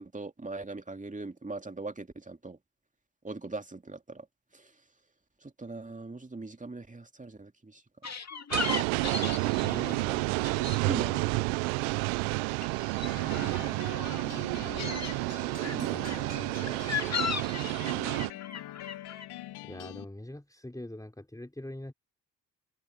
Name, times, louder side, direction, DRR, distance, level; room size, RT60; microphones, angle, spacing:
voice 1, 0.0-2.6 3.2-4.3 4.5-4.7 5.4-7.8 10.9-11.6 15.6-16.0, right 3 dB, 20° right, 2.4 m, -40 dB
sound 1, 8.0-10.8 11.1-11.9 12.2-14.3 14.6-15.1 15.6-19.3, left 7 dB, 40° left, 2.4 m, -37 dB
sound 2, 8.5-18.3, right 28 dB, 85° right, 0.7 m, -30 dB
voice 2, 9.6-10.3 15.7-16.9 19.6-21.9, left 1 dB, 10° left, 4.2 m, -43 dB
sound 3, 13.0-20.0, left 15 dB, 75° left, 1.6 m, -44 dB
open air
hypercardioid pair, 45°, 40 cm